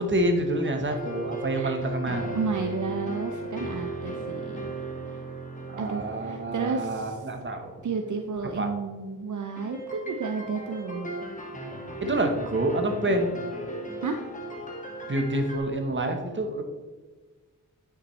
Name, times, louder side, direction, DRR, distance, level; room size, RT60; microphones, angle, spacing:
voice 1, 0.0-2.4 5.7-7.7 8.6-8.7 12.0-13.3 15.1-16.6, right 1 dB, 35° right, 4 dB, 1.0 m, -27 dB
sound 1, 0.9-8.7 9.6-15.6, right 2 dB, 25° left, 1.3 m, -37 dB
voice 2, 2.3-4.7 5.8-7.2 7.8-11.1 14.0-14.2, right 4 dB, 60° right, 5 dB, 0.6 m, -32 dB
9.7 x 5.9 x 3.1 m, 1.3 s
wide cardioid pair, 105°, 33 cm